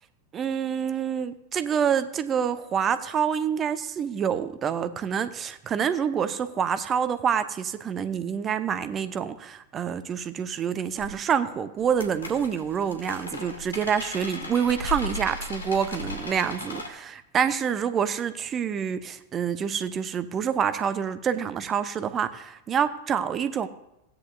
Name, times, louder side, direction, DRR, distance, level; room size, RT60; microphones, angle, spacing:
voice 1, 0.3-23.7, right 7 dB, 25° right, 13 dB, 0.8 m, -27 dB
sound 1, 11.0-11.2 11.8-16.9, left 2 dB, 75° left, 2.0 m, -36 dB
16.5 x 9.8 x 2.7 m, 0.86 s
figure-of-eight pair, 90°, 0 cm